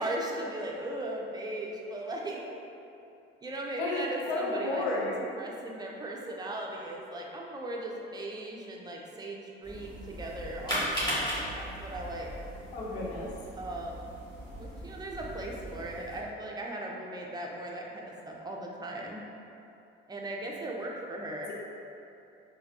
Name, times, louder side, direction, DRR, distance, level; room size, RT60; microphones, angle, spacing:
voice 1, 0.0-2.6 3.4-4.8 5.4-12.3 13.6-14.1 14.6-19.2 20.1-21.5, right 1 dB, 15° right, -1 dB, 0.5 m, -38 dB
voice 2, 3.8-5.3 12.7-13.3, left 2 dB, 80° left, -4 dB, 0.7 m, -32 dB
sound 1, 9.6-16.2, equal, 15° left, 1.4 m, -37 dB
4.0 x 2.3 x 2.7 m, 2.7 s
hypercardioid pair, 55°, 30 cm